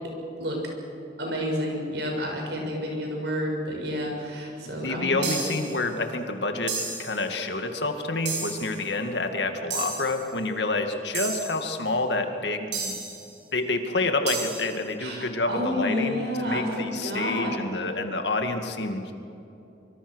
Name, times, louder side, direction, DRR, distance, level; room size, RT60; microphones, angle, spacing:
voice 1, 1.2-5.3 15.0-17.6, equal, 70° right, 1 dB, 6.9 m, -30 dB
voice 2, 4.8-13.0 13.5-19.1, left 2 dB, 75° left, 5 dB, 2.3 m, -28 dB
sound 1, 5.2-5.8 6.7-7.2 8.3-8.8 9.7-10.2 11.1-11.6 12.7-13.3 14.3-14.7, right 4 dB, 90° right, 6.7 m, -32 dB
25.5 x 24.5 x 6.4 m, 2.9 s
head